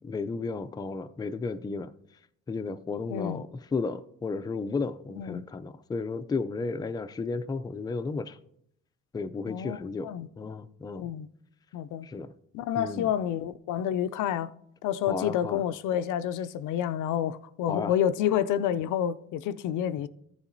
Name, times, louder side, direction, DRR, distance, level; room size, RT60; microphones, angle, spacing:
voice 1, 0.0-1.9 2.5-8.4 9.1-11.1 12.0-12.3 12.8-13.1 15.1-15.6 17.7-17.9, left 4 dB, 15° left, 0.3 m, -33 dB
voice 2, 3.1-3.4 5.2-5.5 9.5-10.3 11.0-11.3 11.7-12.1 12.5-14.5 14.8-20.1, left 10 dB, 85° left, 0.4 m, -29 dB
13.5 x 7.0 x 2.6 m
cardioid pair, 90°, 30 cm